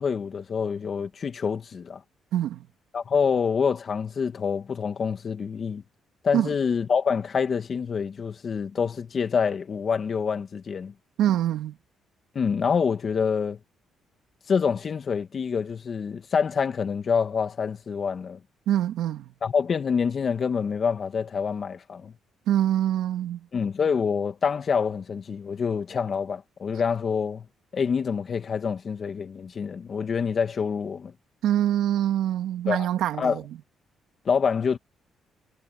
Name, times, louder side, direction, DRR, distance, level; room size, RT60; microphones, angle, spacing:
voice 1, 0.0-2.0 2.9-5.8 6.2-10.9 12.3-13.6 14.5-18.4 19.4-22.1 23.5-27.5 27.7-31.1 32.7-32.9 33.2-33.4 34.3-34.8, left 6 dB, 45° left, 2.1 m, -26 dB
voice 2, 2.3-2.7 6.3-6.5 11.2-11.8 18.7-19.3 22.5-23.5 31.4-33.6, right 11 dB, 85° right, 2.3 m, -25 dB
cardioid pair, 90°, 0 cm